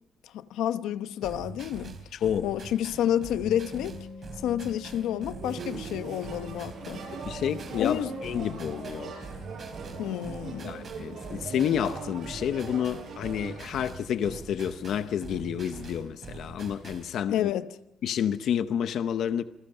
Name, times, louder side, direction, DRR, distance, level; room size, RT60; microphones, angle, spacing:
voice 1, 0.2-2.0 2.4-4.0 4.4-7.0 7.8-8.1 10.0-10.8 17.3-17.7, left 11 dB, 85° left, 1.0 m, -29 dB
sound 1, 1.2-17.1, right 4 dB, 30° right, 3.2 m, -44 dB
voice 2, 2.1-2.5 7.3-9.1 10.6-17.5 18.0-19.4, left 9 dB, 55° left, 0.8 m, -29 dB
sound 2, 3.4-18.3, left 4 dB, 70° left, 4.6 m, -50 dB
sound 3, 5.4-13.7, right 5 dB, 50° right, 8.0 m, -41 dB
28.0 x 21.5 x 5.6 m
cardioid pair, 170°, 0 cm